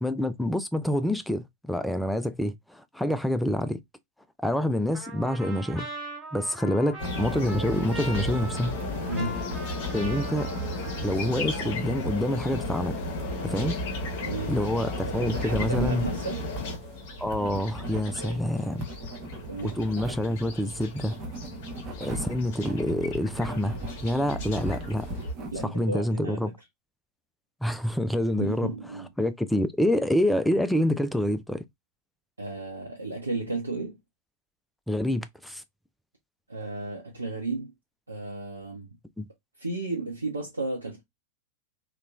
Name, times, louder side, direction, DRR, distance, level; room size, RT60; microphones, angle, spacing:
voice 1, 0.0-3.8 4.4-5.9 6.3-8.8 9.9-10.5 11.0-13.0 13.4-13.7 14.5-16.1 17.2-18.9 19.6-21.2 22.0-25.1 25.6-26.5 27.6-31.6 34.9-35.6 39.2-39.3, left 1 dB, ahead, 0.3 m, -27 dB
Trumpet, 4.9-11.6, right 2 dB, 15° right, 1.2 m, -41 dB
sound 1, 7.0-25.3, left 1 dB, 50° left, 0.8 m, -35 dB
sound 2, 7.0-25.7, right 1 dB, 35° right, 0.8 m, -40 dB
voice 2, 9.1-9.4 14.2-14.5 15.2-16.4 18.2-18.4 19.5-19.8 25.5-26.5 28.4-29.1 32.4-34.0 36.5-37.7 38.1-38.9 39.6-41.0, right 2 dB, 80° right, 0.6 m, -33 dB
2.9 x 2.2 x 2.3 m
figure-of-eight pair, 90°, 0 cm